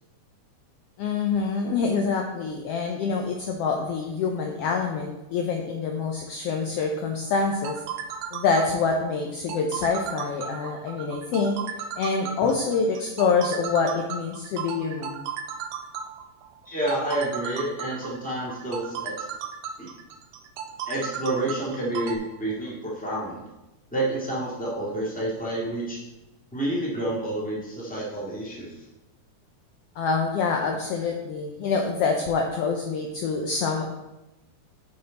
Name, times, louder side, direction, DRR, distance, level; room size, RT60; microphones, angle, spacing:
voice 1, 1.0-7.8 8.3-11.6 12.0-15.3 30.0-33.8, left 4 dB, 80° left, 2 dB, 1.3 m, -26 dB
sound 1, 7.4-22.2, right 8 dB, 80° right, 2.0 m, -35 dB
voice 2, 16.6-19.2 19.8-19.9 20.9-23.4 23.9-26.0 26.5-28.8, right 1 dB, 5° left, -6 dB, 1.4 m, -29 dB
7.8 x 5.5 x 4.0 m, 0.99 s
omnidirectional pair, 3.5 m